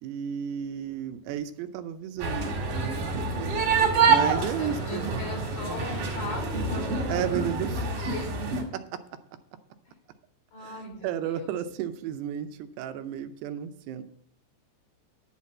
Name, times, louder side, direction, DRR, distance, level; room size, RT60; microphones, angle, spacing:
voice 1, 0.0-2.6 4.1-5.2 7.1-7.8 8.7-8.8 10.6-14.0, right 9 dB, 85° right, 9 dB, 2.8 m, -33 dB
sound 1, 2.2-7.7, left 1 dB, 30° left, 1.3 m, -40 dB
sound 2, 2.2-8.6, right 4 dB, 60° right, 3.2 m, -27 dB
voice 2, 4.2-8.5 9.9-10.0 10.5-11.6, left 1 dB, 90° left, -2 dB, 6.0 m, -39 dB
11.0 x 4.1 x 7.3 m, 0.66 s
omnidirectional pair, 4.7 m